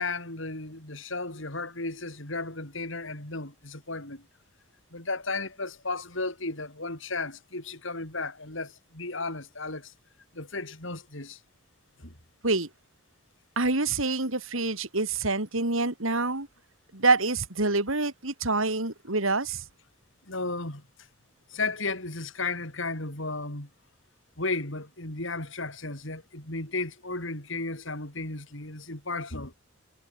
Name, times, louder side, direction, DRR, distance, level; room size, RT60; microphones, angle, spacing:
voice 1, 0.0-4.2 4.9-9.9 10.3-11.4 12.0-12.1 20.3-20.8 21.5-23.7 24.4-29.5, left 3 dB, 65° left, 5.3 m, -34 dB
voice 2, 13.6-16.5 16.9-19.6, right 3 dB, 70° right, 3.8 m, -26 dB
head